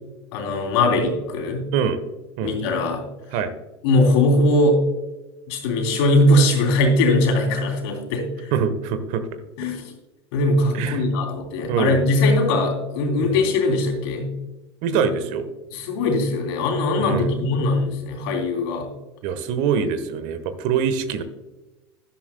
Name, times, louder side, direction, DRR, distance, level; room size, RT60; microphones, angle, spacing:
voice 1, 0.3-1.7 2.4-3.0 3.8-4.8 5.5-8.5 9.6-9.9 10.3-14.3 14.9-15.0 15.7-18.9, left 2 dB, 65° left, 2 dB, 3.1 m, -20 dB
voice 2, 8.5-9.2 10.7-11.0 11.7-12.0 13.2-13.4 14.8-15.5 17.0-17.4 19.2-21.2, right 7 dB, 55° right, 11 dB, 1.2 m, -24 dB
12.0 x 11.5 x 2.2 m, 1.1 s
hypercardioid pair, 85°, 15 cm